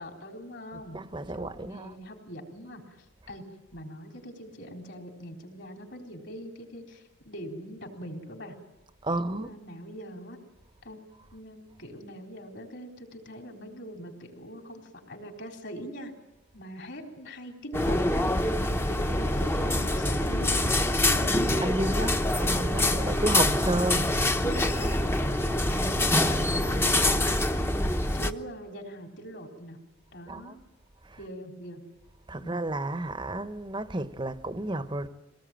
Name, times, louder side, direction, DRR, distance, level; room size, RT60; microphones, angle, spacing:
voice 1, 0.0-1.0 1.3-3.4 3.7-8.6 9.1-10.4 10.8-11.0 11.3-16.1 16.5-18.4 18.9-22.1 22.8-23.8 24.4-26.2 26.5-29.8 30.1-30.6 31.2-31.8 32.4-32.6, equal, 60° left, 4.0 m, -42 dB
voice 2, 0.7-1.9 9.0-9.5 21.6-24.1 26.3-26.7 30.3-30.6 31.0-31.3 32.3-35.1, right 1 dB, 25° right, 0.9 m, -32 dB
sound 1, 17.7-28.3, left 1 dB, 10° left, 0.9 m, -25 dB
24.5 x 18.5 x 9.0 m
head